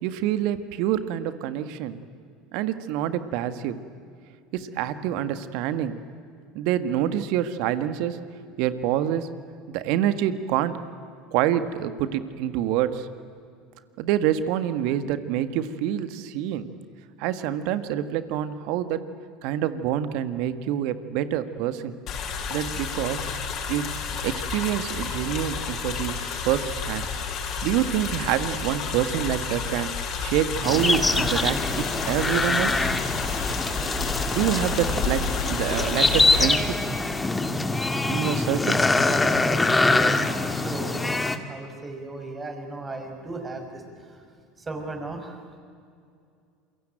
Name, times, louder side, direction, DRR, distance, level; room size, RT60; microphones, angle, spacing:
voice 1, 0.0-2.0 2.5-3.8 4.5-6.0 6.5-8.2 8.5-9.3 9.7-10.8 11.3-13.1 14.0-16.7 17.2-19.0 19.4-21.9 22.5-23.3 23.7-23.9 24.2-26.2 26.4-27.1 27.6-29.9 30.2-32.8 34.3-35.2 35.5-36.8 38.0-38.8, right 11 dB, 65° right, 11 dB, 1.7 m, -26 dB
sound 1, 22.1-36.5, left 5 dB, 50° left, 5.7 m, -30 dB
sound 2, 30.6-41.4, left 2 dB, 15° left, 2.1 m, -24 dB
voice 2, 39.4-41.2 41.5-44.2 44.6-45.6, right 2 dB, 25° right, 4 dB, 6.2 m, -37 dB
28.0 x 23.0 x 9.1 m, 2.3 s
hypercardioid pair, 80°, 0 cm